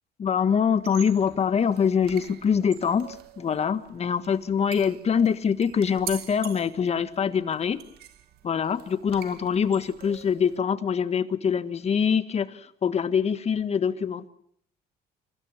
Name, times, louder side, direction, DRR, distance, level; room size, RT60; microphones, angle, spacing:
voice 1, 0.2-7.8 8.4-14.3, left 7 dB, 40° left, 12 dB, 1.5 m, -24 dB
sound 1, 0.7-10.6, right 11 dB, 70° right, 1.8 m, -45 dB
27.0 x 16.5 x 8.3 m, 0.65 s
cardioid pair, 110°, 17 cm